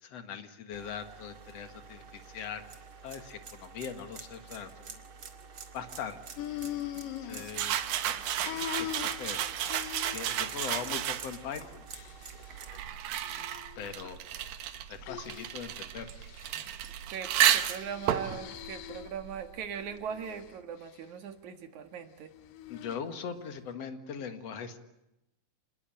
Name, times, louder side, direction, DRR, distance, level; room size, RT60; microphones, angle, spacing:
voice 1, 0.0-2.6 3.0-5.0 5.7-6.2 7.2-8.9 9.2-9.4 10.1-11.9 12.7-12.8 13.8-14.2 14.9-16.1 22.7-24.8, left 7 dB, 50° left, 9 dB, 2.5 m, -41 dB
sound 1, 0.7-12.8, right 5 dB, 40° right, 2.6 m, -48 dB
sound 2, 6.4-8.0 8.3-10.4 10.7-11.1 11.5-12.6 13.3-14.1 15.0-15.6 16.0-16.7 17.6-19.2 19.7-20.5 22.3-23.0, left 12 dB, 75° left, 2.7 m, -42 dB
sound 3, 7.5-11.5 12.3-19.7, right 11 dB, 80° right, 3.0 m, -32 dB
voice 2, 17.1-22.3, right 7 dB, 60° right, 8 dB, 3.0 m, -40 dB
27.0 x 21.0 x 8.9 m, 0.92 s
omnidirectional pair, 4.0 m